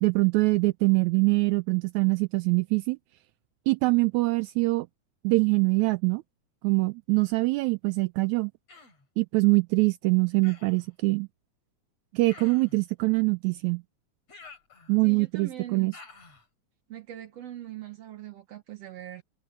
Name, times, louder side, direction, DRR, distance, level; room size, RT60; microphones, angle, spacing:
voice 1, 0.0-3.0 3.7-4.9 5.2-6.2 6.6-8.5 9.2-11.3 12.1-13.8 14.9-15.9, right 25 dB, 80° right, 1.8 m, -24 dB
Human voice, 8.7-9.1 10.4-10.9 12.3-12.8 14.3-15.2 15.9-16.5, left 4 dB, 60° left, 8.2 m, -50 dB
voice 2, 15.0-16.0 16.9-19.2, right 12 dB, 65° right, 2.0 m, -41 dB
omnidirectional pair, 3.4 m